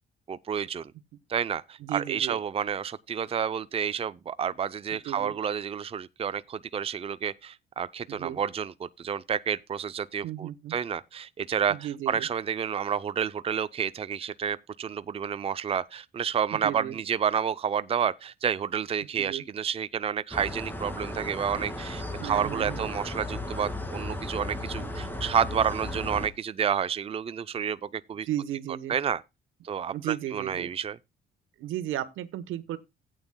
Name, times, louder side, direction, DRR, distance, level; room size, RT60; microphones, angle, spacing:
voice 1, 0.3-0.9 1.3-28.3 28.9-29.2 29.6-31.0, right 8 dB, 30° right, 0.5 m, -30 dB
voice 2, 1.8-2.4 4.9-5.3 8.1-8.4 10.2-10.7 11.7-12.3 16.5-17.0 19.2-19.4 22.2-22.9 28.3-28.9 29.9-30.7 31.6-32.8, right 12 dB, 85° right, 1.1 m, -34 dB
sound 1, 20.3-26.3, left 1 dB, 10° left, 2.3 m, -35 dB
15.5 x 9.0 x 2.2 m
cardioid pair, 90°, 20 cm